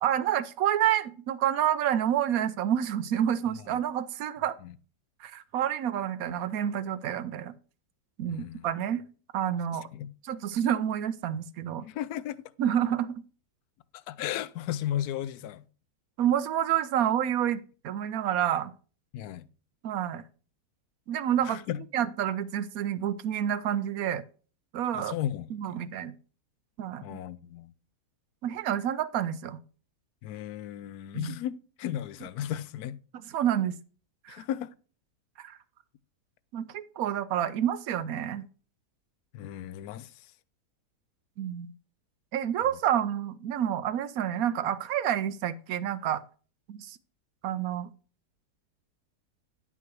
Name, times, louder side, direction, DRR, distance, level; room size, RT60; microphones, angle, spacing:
voice 1, 0.0-4.6 5.2-7.5 8.2-9.0 9.3-9.9 10.2-11.9 12.6-13.2 16.2-18.7 19.8-20.2 21.1-21.6 21.9-24.2 24.7-25.1 25.5-26.1 26.8-27.2 28.4-29.6 31.1-31.4 33.1-33.7 34.2-34.4 35.4-35.6 36.5-38.4 41.4-41.7 42.3-46.2 46.7-47.0 47.4-47.9, right 10 dB, 70° right, 1.0 m, -28 dB
voice 2, 8.3-8.7 9.9-10.1 11.8-12.4 13.9-15.6 19.1-19.5 21.5-21.8 24.9-25.9 27.0-27.7 30.2-33.0 34.3-34.7 39.3-40.1, left 11 dB, 75° left, 1.0 m, -35 dB
9.5 x 5.8 x 4.6 m
omnidirectional pair, 1.7 m